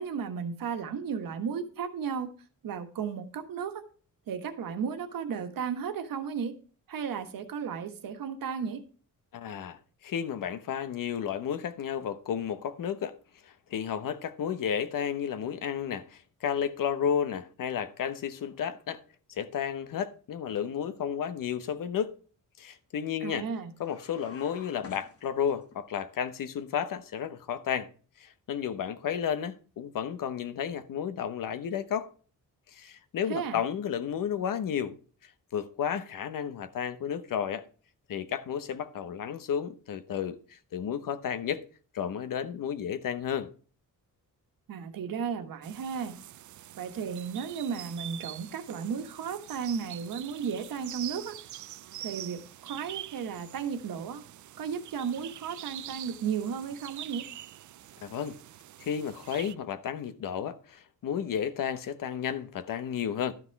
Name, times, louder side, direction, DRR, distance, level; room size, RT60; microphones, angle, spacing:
voice 1, 0.0-2.3 2.6-3.8 4.3-6.5 6.9-8.8 23.2-23.7 33.3-33.6 44.7-46.2 46.8-51.4 52.0-54.2 54.6-57.3, right 7 dB, 80° right, 1.4 m, -34 dB
voice 2, 9.3-13.1 13.4-19.0 19.3-22.2 22.6-23.5 23.8-27.9 28.2-32.1 32.7-35.0 35.2-37.6 38.1-41.6 41.9-43.5 58.0-58.4 58.8-63.3, left 8 dB, 75° left, 1.0 m, -32 dB
sound 1, 23.8-25.8, left 5 dB, 45° left, 1.3 m, -50 dB
sound 2, 45.6-59.5, right 13 dB, 60° right, 0.5 m, -45 dB
12.0 x 6.1 x 4.6 m
wide cardioid pair, 180°, 33 cm